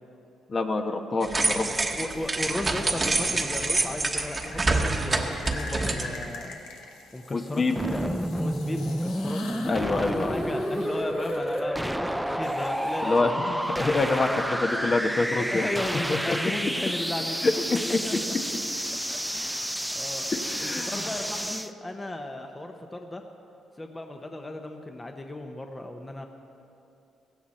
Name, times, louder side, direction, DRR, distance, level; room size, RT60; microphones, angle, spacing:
voice 1, 0.5-1.7 7.3-7.7 9.7-10.5 13.0-15.7 16.1-16.4 17.4-17.5 17.9-18.0 20.3-21.0, left 3 dB, 40° left, 5 dB, 1.1 m, -26 dB
sound 1, 1.2-6.3, right 3 dB, 25° right, 1.2 m, -27 dB
sound 2, 1.9-2.8 4.1-14.8 16.2-18.0, left 3 dB, 85° left, 1.5 m, -45 dB
voice 2, 1.9-6.6 7.1-8.1 8.4-13.4 15.4-18.3 19.1-20.3 20.6-23.2 23.8-26.2, left 1 dB, 20° left, 4 dB, 0.9 m, -35 dB
sound 3, 7.8-21.7, equal, ahead, 0.5 m, -30 dB
16.5 x 15.5 x 4.3 m, 2.7 s
cardioid pair, 90°, 0 cm